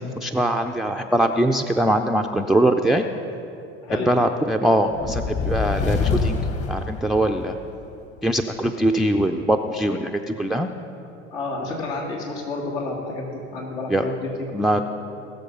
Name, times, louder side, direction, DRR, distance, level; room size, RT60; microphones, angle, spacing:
voice 1, 0.0-3.0 3.9-6.4 6.7-7.6 8.2-10.7 13.9-14.0 14.5-14.8, right 1 dB, ahead, 5 dB, 0.4 m, -22 dB
sound 1, 4.9-7.6, left 5 dB, 45° left, 1.6 m, -25 dB
voice 2, 11.3-14.8, left 3 dB, 80° left, -2 dB, 2.5 m, -30 dB
19.0 x 6.8 x 5.3 m, 2.7 s
hypercardioid pair, 75°, 35 cm